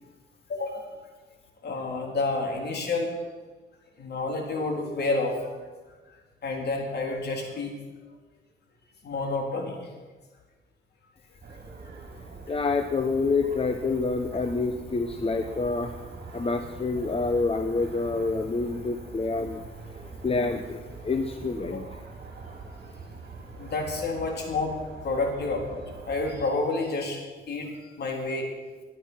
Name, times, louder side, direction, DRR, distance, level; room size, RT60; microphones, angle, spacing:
voice 1, 0.5-0.9 1.6-3.1 4.0-5.5 6.4-7.7 9.0-9.9 12.5-12.6 21.7-21.8 23.6-24.8 25.0-27.2 27.5-28.5, left 3 dB, 55° left, 1 dB, 4.0 m, -29 dB
sound 1, 11.4-26.5, right 4 dB, 50° right, 3.4 m, -43 dB
voice 2, 12.5-19.6 20.2-22.1, left 3 dB, 30° left, 7 dB, 1.0 m, -27 dB
18.5 x 11.0 x 5.9 m, 1.3 s
cardioid pair, 90°, 20 cm